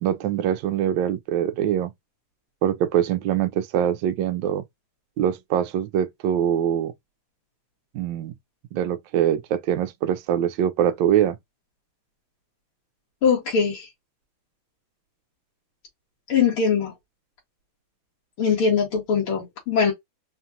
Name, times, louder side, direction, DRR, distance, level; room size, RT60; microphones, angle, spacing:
voice 1, 0.0-1.9 2.6-4.6 5.2-6.9 7.9-8.3 8.7-11.4, right 10 dB, 75° right, 1.2 m, -23 dB
voice 2, 13.2-13.9 16.3-16.9 18.4-19.9, left 6 dB, 85° left, 2.6 m, -21 dB
5.0 x 2.4 x 2.7 m
omnidirectional pair, 2.3 m